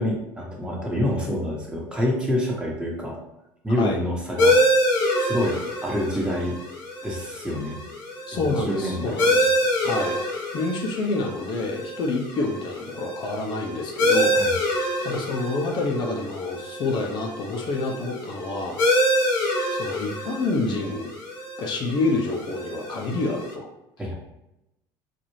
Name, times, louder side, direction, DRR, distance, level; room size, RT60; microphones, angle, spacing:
voice 1, 0.0-3.2 3.6-4.6 5.1-6.5 7.0-7.8 8.3-9.1 14.3-14.5 24.0-24.1, left 1 dB, 10° right, -2 dB, 1.1 m, -27 dB
sound 1, 4.4-23.5, equal, 85° left, 1.2 m, -26 dB
voice 2, 8.3-9.5 9.8-10.2 10.5-14.3 15.0-19.3 19.7-21.1 21.6-23.7, left 3 dB, 50° left, 0 dB, 0.7 m, -28 dB
4.1 x 2.6 x 3.1 m, 0.89 s
supercardioid pair, 95°, 10 cm